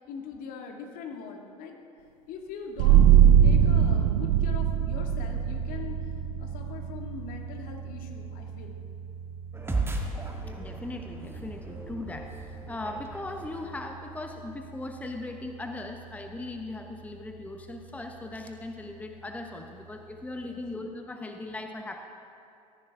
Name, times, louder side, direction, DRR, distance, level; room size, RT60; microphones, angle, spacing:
voice 1, 0.0-1.7 2.3-3.1 3.4-6.0 6.4-8.8 20.4-20.6, left 6 dB, 50° left, 2 dB, 2.0 m, -41 dB
sound 1, 2.8-14.0, right 9 dB, 60° right, 0.6 m, -24 dB
sound 2, 9.5-14.2, right 2 dB, 15° right, 1.9 m, -36 dB
voice 2, 10.6-22.0, left 2 dB, 10° left, 4 dB, 1.0 m, -39 dB
17.5 x 14.5 x 3.6 m, 2.6 s
figure-of-eight pair, 75°, 19 cm